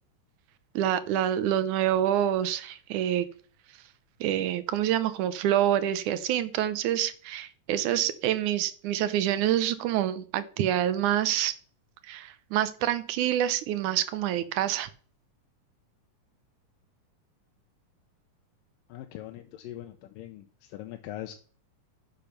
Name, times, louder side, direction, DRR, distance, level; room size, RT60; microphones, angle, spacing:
voice 1, 0.8-3.3 4.2-11.5 12.0-14.9, right 11 dB, 75° right, 13 dB, 2.1 m, -27 dB
voice 2, 18.9-21.3, left 13 dB, 90° left, 6 dB, 2.5 m, -41 dB
10.5 x 6.8 x 5.8 m, 0.42 s
omnidirectional pair, 3.8 m